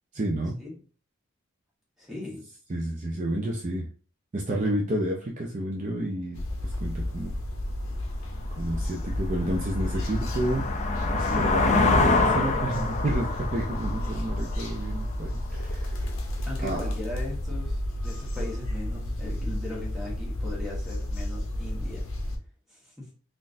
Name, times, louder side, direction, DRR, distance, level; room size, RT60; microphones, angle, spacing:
voice 1, 0.1-0.6 2.7-3.9 4.3-7.3 8.6-10.6 11.1-15.9 16.6-16.9, right 1 dB, 35° right, -2 dB, 0.5 m, -30 dB
voice 2, 2.0-2.4 16.4-22.1 22.7-23.1, left 2 dB, ahead, -5 dB, 1.3 m, -39 dB
sound 1, 6.3-22.4, left 1 dB, 75° left, 0.6 m, -31 dB
sound 2, 8.2-8.3 8.8-15.3, left 3 dB, 35° left, 0.4 m, -26 dB
3.8 x 2.5 x 2.6 m, 0.38 s
head